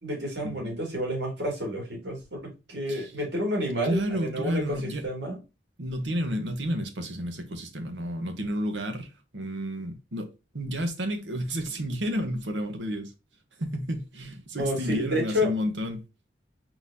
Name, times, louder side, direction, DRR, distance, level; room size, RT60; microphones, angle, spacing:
voice 1, 0.0-5.4 14.6-15.5, equal, 70° right, 2.4 m, -30 dB
voice 2, 3.8-5.1 5.8-13.1 13.6-16.0, equal, 90° right, 1.2 m, -31 dB
4.5 x 4.0 x 2.7 m
head